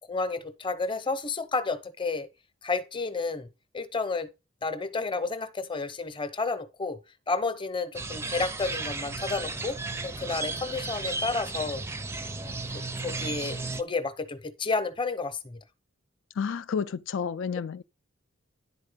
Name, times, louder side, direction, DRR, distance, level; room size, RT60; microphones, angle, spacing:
voice 1, 0.1-2.3 2.6-3.5 3.7-4.3 4.6-7.0 7.3-9.8 10.0-11.8 12.4-15.6 17.5-17.6, left 3 dB, 25° left, 0.8 m, -31 dB
sound 1, 7.9-13.8, right 3 dB, 10° right, 0.5 m, -34 dB
voice 2, 16.4-17.8, left 6 dB, 65° left, 0.4 m, -30 dB
10.5 x 4.3 x 5.0 m
head